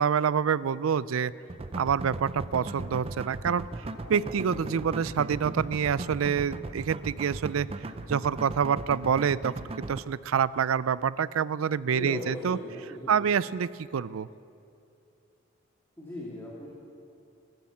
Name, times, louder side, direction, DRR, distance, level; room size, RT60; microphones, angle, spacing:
voice 1, 0.0-1.3 1.8-3.7 4.1-7.7 8.1-12.6 13.1-14.3, right 7 dB, 85° right, 19 dB, 0.4 m, -27 dB
sound 1, 1.5-10.0, right 2 dB, 30° right, 0.6 m, -37 dB
sound 2, 3.5-6.6 6.9-7.3, equal, 85° left, 3.5 m, -46 dB
voice 2, 11.8-13.3 16.0-16.7, left 1 dB, 10° left, -5 dB, 2.2 m, -38 dB
15.0 x 13.5 x 7.3 m, 2.6 s
head